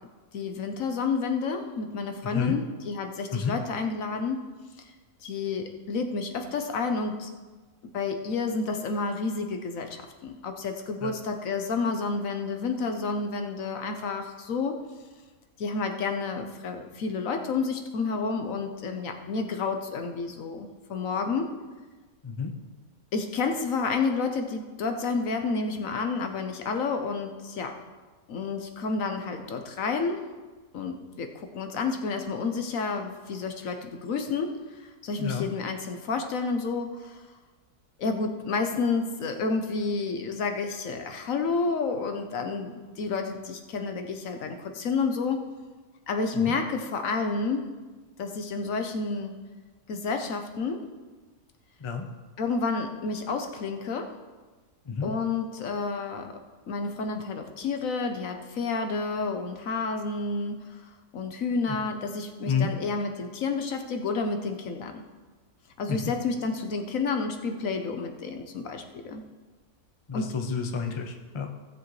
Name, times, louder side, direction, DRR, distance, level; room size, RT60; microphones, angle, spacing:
voice 1, 0.3-4.5 5.2-7.3 7.9-14.8 15.6-21.6 23.1-27.8 28.3-30.2 30.7-37.2 38.0-45.5 46.1-47.7 48.2-49.4 49.9-50.9 52.4-54.1 55.0-56.4 56.7-65.0 65.8-69.2 70.1-70.3, left 4 dB, 65° left, 5 dB, 1.2 m, -30 dB
voice 2, 2.2-2.6 3.3-3.5 11.0-11.1 22.2-22.5 35.2-35.5 46.3-46.6 51.8-52.0 54.9-55.1 61.7-61.8 62.4-62.7 65.9-66.0 70.1-71.5, left 6 dB, 30° left, 4 dB, 0.6 m, -30 dB
16.5 x 7.4 x 3.2 m, 1.3 s
omnidirectional pair, 1.6 m